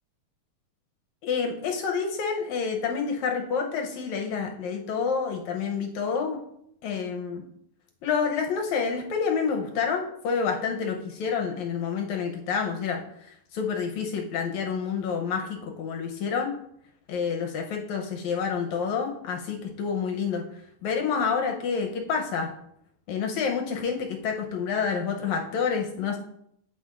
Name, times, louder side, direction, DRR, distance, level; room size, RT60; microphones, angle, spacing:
voice 1, 1.2-6.4 6.8-7.4 8.0-16.6 17.1-20.4 20.8-22.5 23.1-26.2, left 6 dB, 75° left, 2 dB, 1.8 m, -28 dB
8.6 x 7.8 x 2.4 m, 0.73 s
omnidirectional pair, 3.9 m